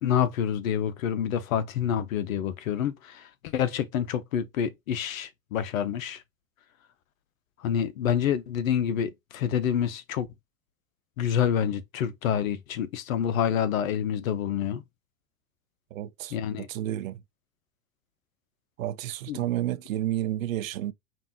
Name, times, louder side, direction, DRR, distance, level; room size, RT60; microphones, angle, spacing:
voice 1, 0.0-6.2 7.6-10.3 11.2-14.8 16.3-16.7 19.3-19.4, left 9 dB, 70° left, 0.8 m, -27 dB
voice 2, 15.9-17.2 18.8-20.9, right 13 dB, 70° right, 0.6 m, -31 dB
5.3 x 2.6 x 2.9 m
hypercardioid pair, 85°, 42 cm